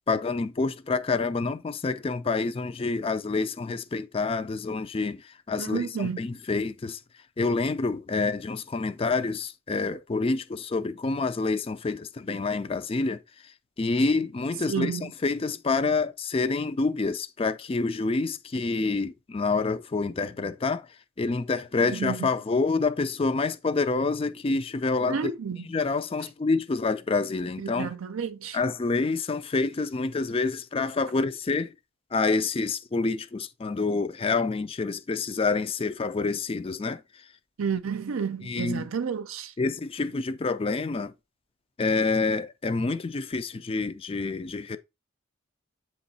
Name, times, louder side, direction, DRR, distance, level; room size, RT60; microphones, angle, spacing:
voice 1, 0.1-7.0 7.4-13.2 13.8-20.9 21.2-25.3 25.7-27.9 28.5-31.7 32.1-37.0 38.4-38.9 39.6-41.1 41.8-44.8, left 3 dB, 25° left, 0.4 m, -27 dB
voice 2, 5.6-6.2 14.7-15.1 21.8-22.3 25.1-25.7 27.6-28.6 37.6-39.5, right 6 dB, 75° right, 0.5 m, -31 dB
7.9 x 3.1 x 4.1 m
head